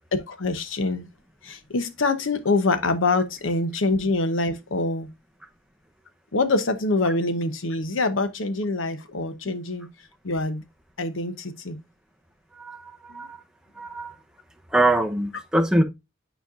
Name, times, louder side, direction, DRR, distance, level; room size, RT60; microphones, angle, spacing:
voice 1, 0.1-1.1 1.4-5.1 6.3-9.9 10.2-10.6 11.0-11.8 13.1-13.3, left 3 dB, 90° left, 0.9 m, -25 dB
voice 2, 12.5-13.4 13.8-14.2 14.7-15.8, right 1 dB, 5° right, 0.7 m, -23 dB
9.2 x 4.5 x 2.5 m
head